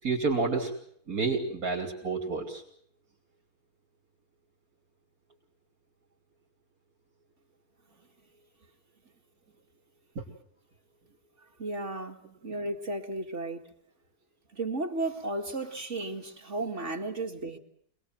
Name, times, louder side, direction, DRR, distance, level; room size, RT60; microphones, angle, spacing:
voice 1, 0.0-0.7 1.1-2.6 10.2-10.3, right 4 dB, 65° right, 0 dB, 3.7 m, -29 dB
voice 2, 11.6-12.2 12.4-13.7 14.5-17.6, right 2 dB, 50° right, 3 dB, 2.5 m, -34 dB
27.0 x 20.0 x 7.8 m, 0.65 s
omnidirectional pair, 1.6 m